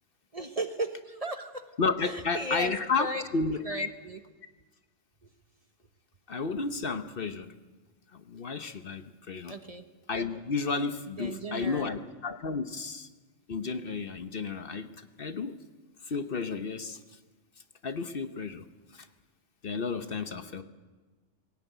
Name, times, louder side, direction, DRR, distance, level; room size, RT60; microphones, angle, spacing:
voice 1, 0.3-1.6 2.0-3.2 3.6-4.2 9.5-9.8 11.2-12.1, right 1 dB, 30° right, 7 dB, 1.1 m, -36 dB
voice 2, 1.8-3.9 6.3-7.5 8.1-9.5 10.1-13.1 13.5-15.6 16.0-17.2 17.8-18.7 18.9-19.1 19.6-20.6, left 4 dB, 55° left, 9 dB, 1.0 m, -32 dB
21.5 x 16.5 x 9.2 m, 1.3 s
omnidirectional pair, 1.2 m